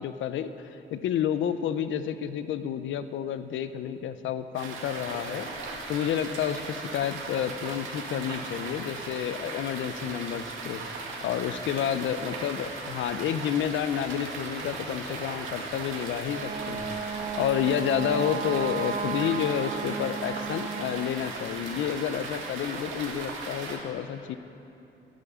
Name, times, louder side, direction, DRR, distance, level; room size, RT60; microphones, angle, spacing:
voice 1, 0.0-10.8 11.2-17.0 17.3-24.4, left 9 dB, 75° left, 12 dB, 0.7 m, -30 dB
sound 1, 4.5-23.8, right 3 dB, 80° right, 1.9 m, -38 dB
Wind instrument woodwind instrument, 16.2-21.2, right 7 dB, 50° right, 0.7 m, -34 dB
10.5 x 10.0 x 7.1 m, 2.8 s
cardioid pair, 90°, 20 cm